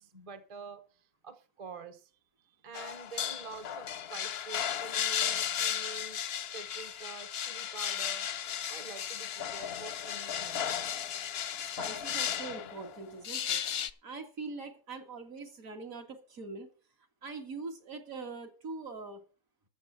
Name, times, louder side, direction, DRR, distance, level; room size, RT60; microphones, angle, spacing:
voice 1, 0.0-2.1 2.4-8.3 8.7-10.7, right 4 dB, 25° right, 9 dB, 0.9 m, -47 dB
sound 1, 2.7-13.9, left 9 dB, 55° left, 0.7 m, -35 dB
voice 2, 11.8-13.6 14.0-16.7 17.2-19.2, right 3 dB, 60° right, 3 dB, 2.4 m, -42 dB
13.0 x 7.3 x 5.7 m, 0.38 s
omnidirectional pair, 1.6 m